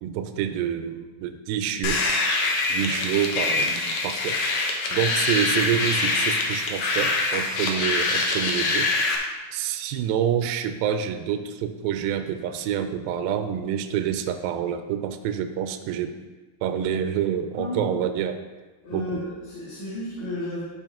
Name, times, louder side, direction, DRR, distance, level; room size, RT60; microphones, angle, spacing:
voice 1, 0.0-2.0 2.7-4.4 4.9-8.9 9.5-16.2 16.6-18.4 18.9-19.2, right 9 dB, 85° right, 8 dB, 2.2 m, -27 dB
sound 1, 1.8-9.2, left 3 dB, 85° left, 1.5 m, -24 dB
voice 2, 17.6-17.9 18.8-20.6, left 2 dB, 50° left, -11 dB, 3.4 m, -33 dB
12.0 x 4.3 x 3.6 m, 1.2 s
omnidirectional pair, 4.5 m